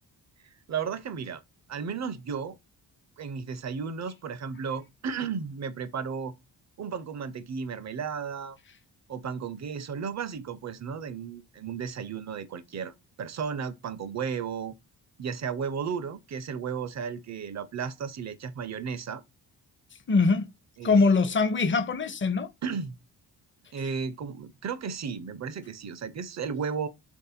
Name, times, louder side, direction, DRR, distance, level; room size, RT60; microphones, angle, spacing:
voice 1, 0.7-1.4 1.7-2.6 3.2-6.3 6.8-8.6 9.1-14.7 15.2-19.2 20.8-21.0 22.6-22.9 23.7-26.9, right 6 dB, 40° right, 0.6 m, -34 dB
voice 2, 20.1-20.5 20.8-22.5, left 4 dB, 30° left, 0.6 m, -22 dB
3.3 x 2.6 x 4.2 m
supercardioid pair, 45°, 43 cm